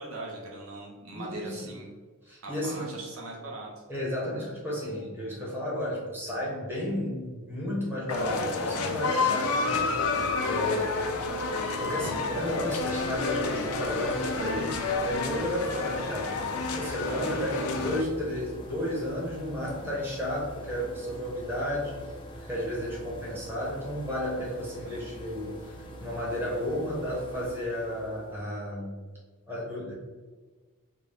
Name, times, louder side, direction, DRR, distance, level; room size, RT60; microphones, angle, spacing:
voice 1, 0.0-1.9 2.4-3.7 17.1-17.3 24.8-25.1, right 2 dB, 70° right, -2 dB, 0.7 m, -40 dB
voice 2, 1.1-1.7 2.2-3.0 3.9-10.9 11.8-21.9 22.3-25.5 26.0-29.0 29.5-29.9, left 1 dB, 10° right, -6 dB, 1.1 m, -33 dB
sound 1, 8.1-18.0, left 3 dB, 80° left, 0.5 m, -30 dB
sound 2, 9.1-28.5, equal, 25° left, 0.5 m, -44 dB
3.9 x 2.2 x 3.4 m, 1.4 s
head